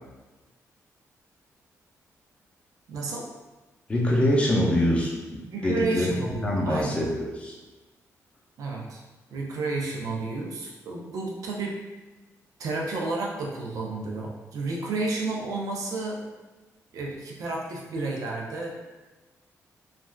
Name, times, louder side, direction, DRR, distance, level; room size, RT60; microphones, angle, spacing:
voice 1, 2.9-3.3 5.5-7.1 8.6-9.0 9.3-11.8 12.6-16.3 16.9-18.8, right 3 dB, 80° right, -1 dB, 0.6 m, -31 dB
voice 2, 3.9-6.1 6.4-7.6, left 1 dB, 20° left, -3 dB, 0.6 m, -24 dB
3.2 x 2.5 x 2.3 m, 1.2 s
wide cardioid pair, 140°, 6 cm